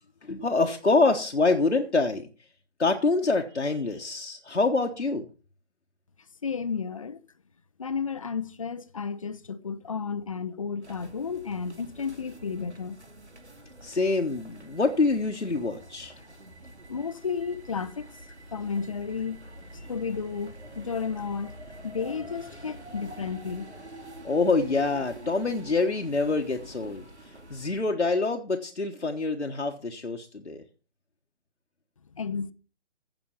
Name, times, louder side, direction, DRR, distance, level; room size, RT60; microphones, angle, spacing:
voice 1, 0.2-2.3 2.8-5.3 13.8-16.1 24.2-30.6, left 3 dB, 80° left, 1.3 m, -26 dB
voice 2, 6.4-7.2 7.8-13.0 16.9-18.1 18.5-19.4 19.9-21.5 21.8-23.7 32.2-32.5, left 5 dB, 30° left, 0.6 m, -32 dB
sound 1, 10.8-27.8, right 1 dB, 75° right, 2.6 m, -46 dB
15.5 x 6.2 x 5.8 m
figure-of-eight pair, 140°, 34 cm